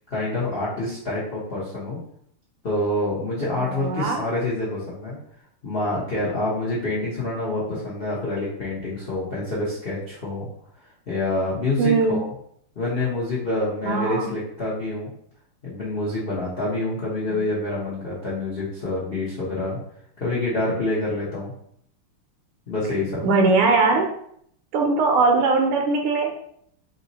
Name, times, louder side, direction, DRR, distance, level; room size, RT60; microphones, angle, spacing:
voice 1, 0.1-2.0 2.6-5.2 5.6-10.5 11.1-12.3 12.8-15.1 15.6-19.8 20.2-21.5 22.7-23.3, left 2 dB, 80° left, -7 dB, 0.5 m, -27 dB
voice 2, 3.6-4.2 11.8-12.2 13.8-14.3 17.3-17.4 23.2-24.1 24.7-26.3, right 3 dB, 80° right, 2 dB, 1.5 m, -20 dB
3.7 x 2.7 x 4.0 m, 0.68 s
omnidirectional pair, 2.4 m